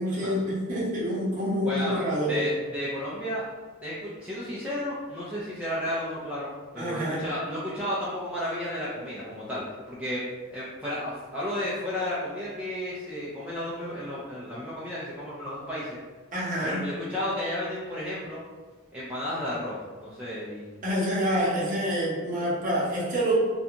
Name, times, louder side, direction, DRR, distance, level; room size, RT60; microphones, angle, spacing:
voice 1, 0.0-2.5 6.8-7.2 16.3-16.8 20.8-23.4, equal, 35° right, -6 dB, 0.7 m, -27 dB
voice 2, 1.7-2.0 2.3-3.4 3.8-16.0 16.6-18.4 18.9-20.7, left 1 dB, 5° right, -9 dB, 0.3 m, -33 dB
2.5 x 2.2 x 2.7 m, 1.4 s
head